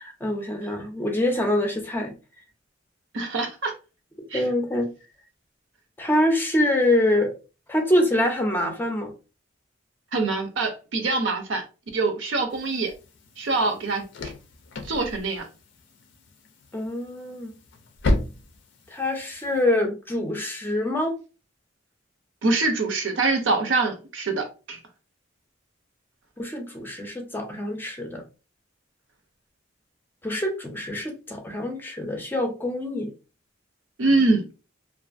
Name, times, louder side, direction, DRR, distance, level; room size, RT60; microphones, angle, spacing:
voice 1, 0.0-2.1 4.3-4.9 6.0-7.3 7.7-9.1 16.7-17.5 18.9-21.2 26.4-28.2 30.2-33.1, left 1 dB, 10° left, 0.5 m, -25 dB
voice 2, 3.1-3.7 4.3-4.4 10.1-11.6 11.9-12.9 13.4-14.0 14.8-15.5 22.4-24.8 34.0-34.5, right 3 dB, 75° right, 0.6 m, -24 dB
sound 1, 12.5-19.6, left 1 dB, 70° left, 0.5 m, -33 dB
2.5 x 2.4 x 2.4 m
head